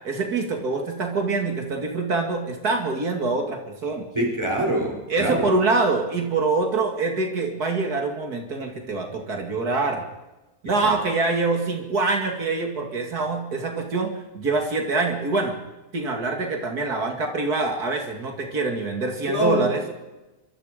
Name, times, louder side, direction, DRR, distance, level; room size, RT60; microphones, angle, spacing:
voice 1, 0.0-4.0 5.1-10.0 10.6-15.6 15.9-19.8, right 3 dB, 80° right, 3 dB, 2.9 m, -25 dB
voice 2, 4.1-5.5 10.8-10.9 19.2-19.6, equal, 15° right, 0 dB, 5.8 m, -24 dB
24.5 x 24.5 x 5.2 m, 1.1 s
omnidirectional pair, 1.6 m